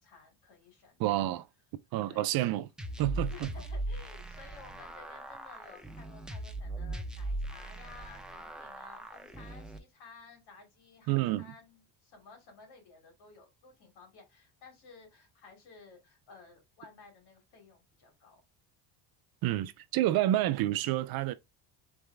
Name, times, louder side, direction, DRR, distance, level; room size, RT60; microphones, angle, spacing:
voice 1, 0.0-1.2 2.1-2.3 3.3-18.4, left 4 dB, 60° left, 2.8 m, -55 dB
voice 2, 1.0-1.5 1.9-2.7 3.0-3.5 11.1-11.5 19.4-21.3, right 14 dB, 55° right, 0.5 m, -29 dB
sound 1, 2.8-9.8, right 1 dB, ahead, 0.5 m, -39 dB
3.9 x 3.6 x 3.3 m
cardioid pair, 115°, 43 cm